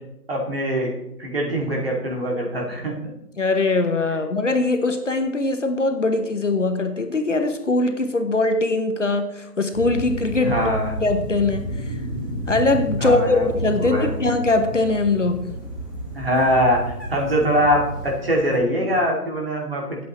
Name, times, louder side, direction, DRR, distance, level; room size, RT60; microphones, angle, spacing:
voice 1, 0.3-0.9 1.2-2.9 10.4-10.9 13.0-13.5 13.8-14.1 16.1-16.8 17.1-20.0, equal, 40° right, -1 dB, 2.4 m, -22 dB
voice 2, 3.4-10.6 11.0-12.0 12.5-15.5, left 3 dB, 50° left, 7 dB, 1.0 m, -21 dB
sound 1, 9.7-18.6, right 1 dB, 15° left, 1.3 m, -31 dB
17.0 x 8.3 x 3.1 m, 0.88 s
figure-of-eight pair, 180°, 46 cm